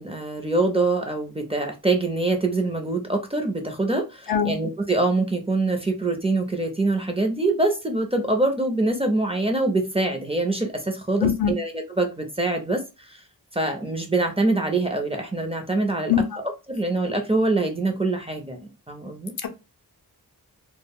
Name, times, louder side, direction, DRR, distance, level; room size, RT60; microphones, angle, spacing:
voice 1, 0.0-13.2 13.5-16.1 16.7-19.3, right 2 dB, 15° right, 0.5 m, -24 dB
voice 2, 11.2-11.5 16.1-16.2 19.4-19.5, left 8 dB, 60° left, 0.6 m, -21 dB
2.1 x 2.1 x 3.5 m
wide cardioid pair, 90°, 40 cm